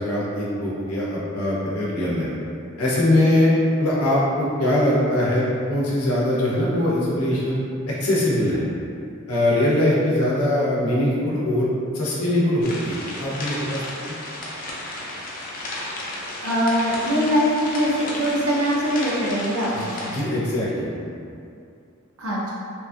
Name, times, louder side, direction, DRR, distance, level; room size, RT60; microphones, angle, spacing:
voice 1, 0.0-2.3 2.8-3.5 3.8-7.6 7.9-8.7 9.3-11.7 11.9-14.1 19.7-21.1, left 1 dB, 80° left, -6 dB, 0.7 m, -22 dB
sound 1, 12.6-20.2, left 1 dB, 40° left, 0.4 m, -33 dB
voice 2, 16.4-20.2 22.2-22.5, equal, 75° right, -6 dB, 0.7 m, -22 dB
2.9 x 2.6 x 2.3 m, 2.5 s
head